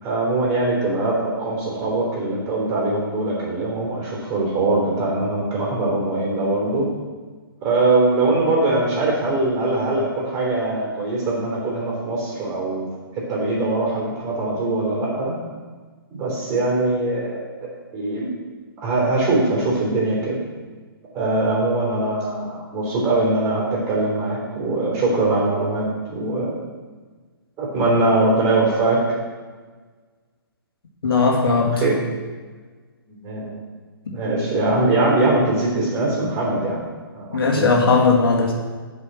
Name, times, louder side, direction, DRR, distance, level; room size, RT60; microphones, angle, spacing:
voice 1, 0.0-6.9 7.6-12.9 13.1-15.3 16.1-17.4 17.9-18.3 18.8-20.4 21.1-26.6 27.6-29.0 31.8-32.0 33.1-33.6 34.1-36.8 37.1-37.7, right 2 dB, 25° right, -3 dB, 3.3 m, -22 dB
voice 2, 31.0-31.8 34.1-34.2 37.3-38.5, left 4 dB, 70° left, -1 dB, 2.2 m, -18 dB
8.1 x 5.3 x 7.5 m, 1.4 s
hypercardioid pair, 140°, 13 cm